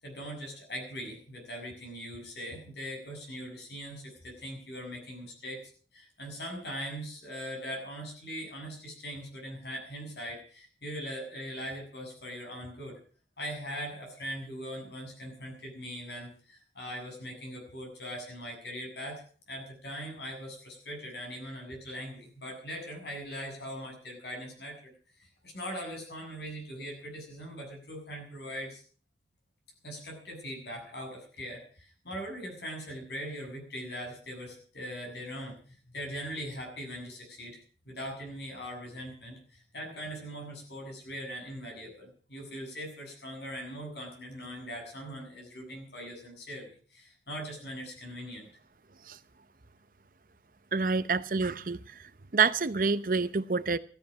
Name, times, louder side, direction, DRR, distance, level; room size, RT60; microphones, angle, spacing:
voice 1, 0.0-13.0 13.4-24.9 25.2-28.8 29.8-48.5, equal, 70° left, 7.5 m, -41 dB
voice 2, 50.7-51.8 52.3-53.8, right 4 dB, 50° right, 0.7 m, -27 dB
15.5 x 13.5 x 6.3 m
head